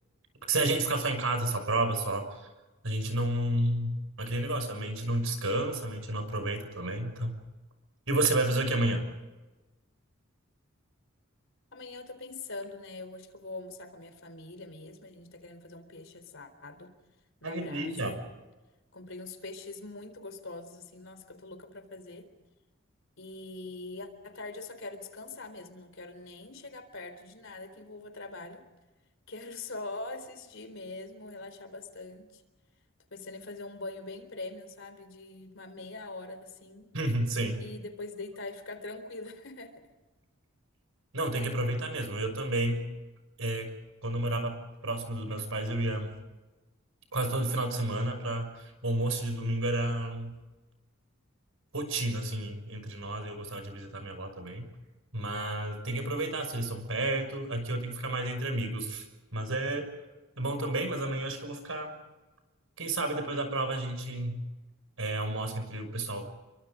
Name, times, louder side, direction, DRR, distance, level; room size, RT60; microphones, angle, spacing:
voice 1, 0.5-2.5 2.8-7.4 8.1-9.0 17.4-18.2 36.9-37.6 41.1-42.8 43.4-43.7 44.0-46.1 47.1-50.4 51.7-54.7 55.1-59.1 59.3-59.9 60.4-61.9 62.8-64.4 65.0-66.2, right 2 dB, 70° right, 7 dB, 6.2 m, -31 dB
voice 2, 11.7-17.0 17.4-18.2 18.9-22.3 23.2-28.6 29.3-32.4 33.1-36.9 37.6-39.9, left 2 dB, 65° left, 9 dB, 4.0 m, -43 dB
30.0 x 24.5 x 5.1 m, 1.1 s
head